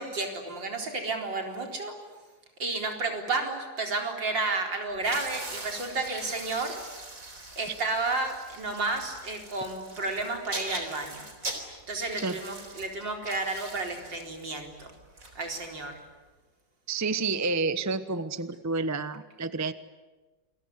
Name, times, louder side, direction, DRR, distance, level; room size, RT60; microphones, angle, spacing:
voice 1, 0.0-1.9 2.6-6.8 7.6-11.3 11.9-15.0 15.3-16.0, right 3 dB, 70° right, 3 dB, 4.9 m, -32 dB
sound 1, 5.0-16.0, right 2 dB, 45° right, 4.4 m, -41 dB
voice 2, 16.9-19.7, right 3 dB, 15° right, 12 dB, 0.6 m, -29 dB
28.0 x 22.0 x 9.7 m, 1.2 s
omnidirectional pair, 2.0 m